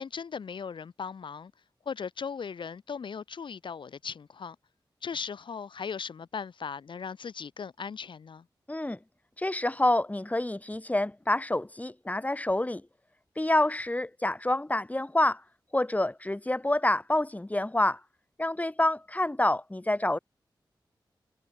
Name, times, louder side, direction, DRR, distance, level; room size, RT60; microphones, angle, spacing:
voice 1, 0.0-1.5 1.9-4.6 5.0-8.5, left 6 dB, 85° left, 5.2 m, -38 dB
voice 2, 8.7-9.0 9.4-12.8 13.4-15.4 15.7-18.0 18.4-20.2, left 1 dB, 20° left, 3.5 m, -27 dB
cardioid pair, 65°, 8 cm